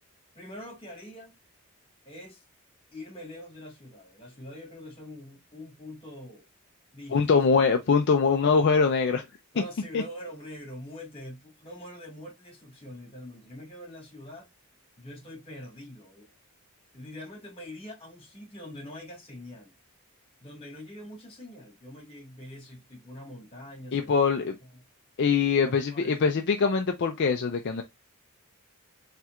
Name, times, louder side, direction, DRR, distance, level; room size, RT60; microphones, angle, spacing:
voice 1, 0.3-1.3 2.1-2.4 2.9-6.4 6.9-7.4 9.5-14.5 15.0-16.3 16.9-19.7 20.4-24.8 25.6-26.3, left 1 dB, 25° left, 1.9 m, -44 dB
voice 2, 7.1-9.2 9.9-10.0 23.9-24.6 25.2-27.8, left 5 dB, 55° left, 0.5 m, -23 dB
4.3 x 3.3 x 2.4 m
head